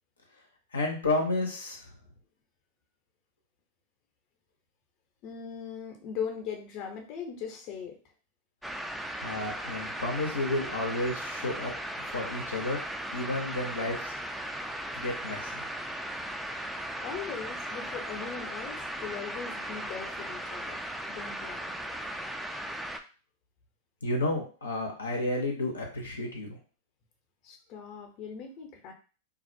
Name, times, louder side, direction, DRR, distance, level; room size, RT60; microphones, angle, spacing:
voice 1, 0.7-1.8 9.2-11.7 12.1-12.8 13.1-14.1 15.0-15.6 24.0-26.6, left 2 dB, 90° left, 1 dB, 0.6 m, -31 dB
voice 2, 5.2-8.0 17.0-21.8 27.4-28.9, left 7 dB, 45° left, 3 dB, 0.6 m, -39 dB
sound 1, 8.6-23.0, right 1 dB, ahead, 0.3 m, -37 dB
2.4 x 2.0 x 2.6 m, 0.36 s
hypercardioid pair, 100°, 0 cm